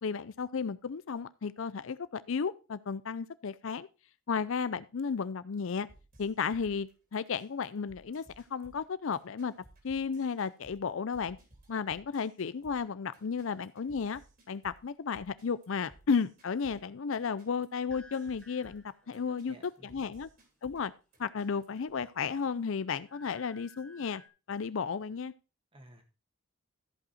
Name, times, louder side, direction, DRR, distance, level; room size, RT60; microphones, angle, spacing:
voice 1, 0.0-3.9 4.3-5.9 6.2-9.5 9.8-11.4 11.7-14.2 14.5-19.6 19.8-20.3 20.6-20.9 21.2-24.2 24.5-25.3, left 5 dB, 65° left, 0.5 m, -33 dB
sound 1, 5.9-21.9, right 1 dB, 45° right, 3.3 m, -60 dB
sound 2, 17.9-19.4 21.4-22.1 22.5-24.3, left 2 dB, 5° left, 1.1 m, -58 dB
voice 2, 19.0-20.0 25.7-26.0, equal, 25° right, 1.8 m, -55 dB
14.0 x 5.4 x 4.2 m
head